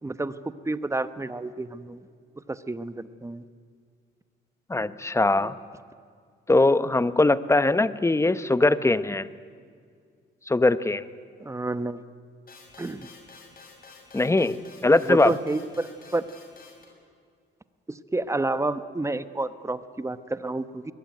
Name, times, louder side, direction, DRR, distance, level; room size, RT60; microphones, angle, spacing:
voice 1, 0.0-2.0 2.5-3.4 11.4-12.0 12.8-13.1 15.0-16.3 17.9-20.9, right 2 dB, 15° right, 12 dB, 1.0 m, -30 dB
voice 2, 4.7-5.6 6.5-9.3 10.5-11.1 14.1-15.3, left 2 dB, 15° left, 14 dB, 0.8 m, -21 dB
sound 1, 12.5-16.9, left 4 dB, 45° left, 6.8 m, -50 dB
21.5 x 21.0 x 9.4 m, 2.1 s
cardioid pair, 90°, 20 cm